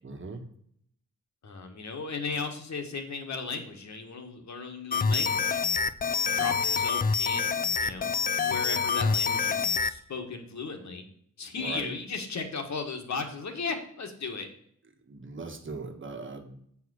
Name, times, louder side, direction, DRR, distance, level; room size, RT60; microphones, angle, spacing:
voice 1, 0.0-0.4 11.6-11.9 15.1-16.6, right 3 dB, 40° right, 5 dB, 1.4 m, -39 dB
voice 2, 1.4-5.6 6.3-11.0 11.4-14.5, left 4 dB, 70° left, 4 dB, 1.6 m, -36 dB
sound 1, 4.9-9.9, left 5 dB, 30° left, 0.4 m, -27 dB
8.0 x 4.9 x 6.3 m, 0.66 s
wide cardioid pair, 120°, 30 cm